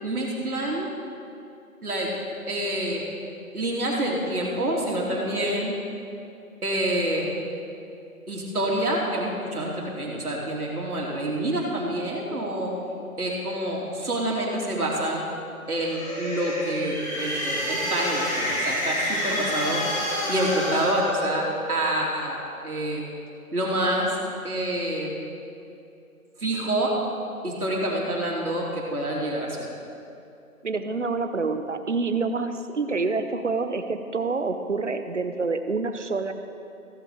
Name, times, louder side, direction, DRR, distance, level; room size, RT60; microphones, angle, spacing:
voice 1, 0.0-0.9 1.8-2.1 2.5-3.0 3.5-5.7 6.6-7.3 8.3-12.7 13.2-15.2 15.7-19.9 20.3-23.0 23.5-24.1 24.4-25.1 26.4-26.9 27.4-29.7, right 1 dB, 80° right, -3 dB, 3.1 m, -27 dB
sound 1, 15.7-21.8, equal, 20° left, 2.2 m, -29 dB
voice 2, 30.6-36.3, right 4 dB, 55° right, 9 dB, 0.8 m, -27 dB
16.0 x 7.8 x 5.0 m, 2.7 s
figure-of-eight pair, 175°, 44 cm